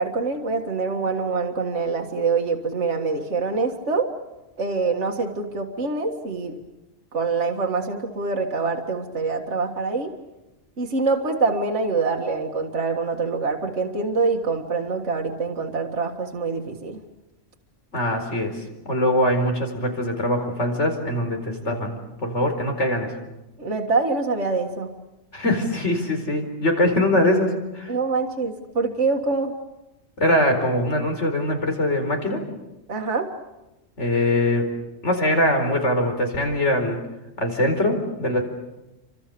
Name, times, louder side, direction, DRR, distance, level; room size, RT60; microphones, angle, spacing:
voice 1, 0.0-4.1 4.6-6.6 7.1-10.1 10.8-17.0 23.6-24.9 27.9-29.5 32.9-33.3, right 4 dB, 65° right, 2 dB, 2.2 m, -25 dB
voice 2, 17.9-18.6 18.8-23.1 25.3-27.9 30.2-32.4 34.0-34.7 35.0-37.0 37.4-38.4, left 1 dB, 60° left, 4 dB, 4.9 m, -22 dB
29.5 x 26.0 x 6.9 m, 1.0 s
omnidirectional pair, 1.3 m